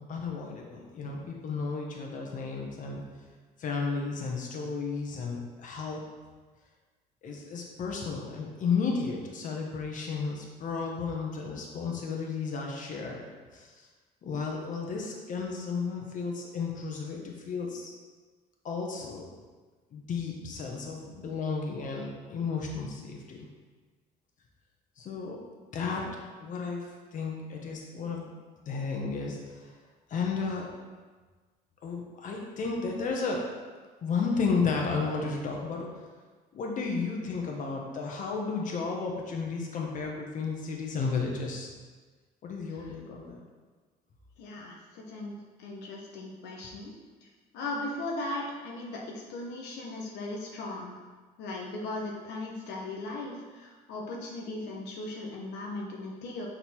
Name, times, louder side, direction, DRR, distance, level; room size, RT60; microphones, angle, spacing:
voice 1, 0.1-3.0 3.6-6.1 7.2-13.2 13.5-13.9 14.2-17.9 18.6-19.4 19.9-23.5 25.0-25.4 25.7-26.1 26.4-28.3 28.6-29.7 30.1-30.7 31.8-33.5 34.0-36.0 36.5-41.7 42.4-43.4, left 4 dB, 50° left, 0 dB, 1.2 m, -33 dB
voice 2, 44.4-46.9 47.2-47.3 47.5-50.9 51.4-56.5, left 2 dB, 85° left, -1 dB, 1.0 m, -38 dB
6.4 x 3.9 x 4.5 m, 1.4 s
cardioid pair, 110°, 17 cm